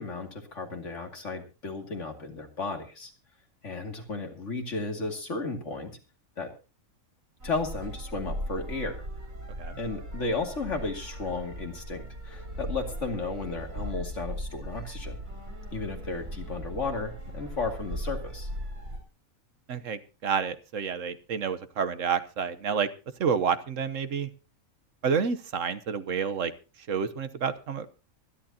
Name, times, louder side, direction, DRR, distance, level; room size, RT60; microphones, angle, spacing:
voice 1, 0.0-3.1 3.6-5.9 6.4-6.5 7.4-9.0 9.8-15.2 15.7-18.5, left 3 dB, 60° left, 3 dB, 2.8 m, -34 dB
sound 1, 7.4-19.0, equal, 90° right, 5.9 m, -38 dB
voice 2, 19.7-22.9 23.2-24.3 25.0-26.5 26.9-27.9, right 6 dB, 70° right, 11 dB, 1.3 m, -29 dB
25.0 x 11.0 x 2.8 m, 0.32 s
omnidirectional pair, 1.4 m